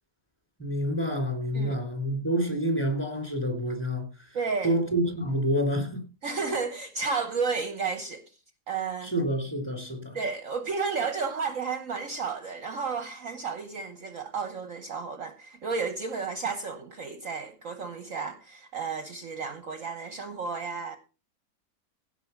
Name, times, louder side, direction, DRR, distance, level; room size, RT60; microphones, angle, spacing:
voice 1, 0.6-4.1 4.6-6.1 9.0-10.1, equal, 5° left, 3.6 m, -28 dB
voice 2, 4.3-4.7 6.2-8.2 8.7-9.1 10.1-21.0, right 5 dB, 55° right, 1.3 m, -32 dB
16.5 x 5.6 x 5.8 m
omnidirectional pair, 1.8 m